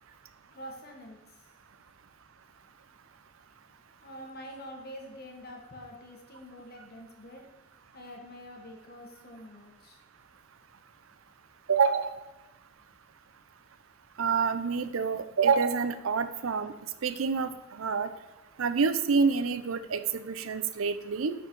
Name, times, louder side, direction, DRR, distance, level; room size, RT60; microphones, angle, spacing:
voice 1, 0.5-1.4 4.0-7.4 7.9-10.0, equal, 50° left, 1 dB, 1.6 m, -46 dB
voice 2, 11.7-12.1 14.2-16.7 17.0-18.1 18.6-21.3, right 5 dB, 75° right, 12 dB, 0.5 m, -27 dB
10.0 x 4.5 x 4.6 m, 1.1 s
head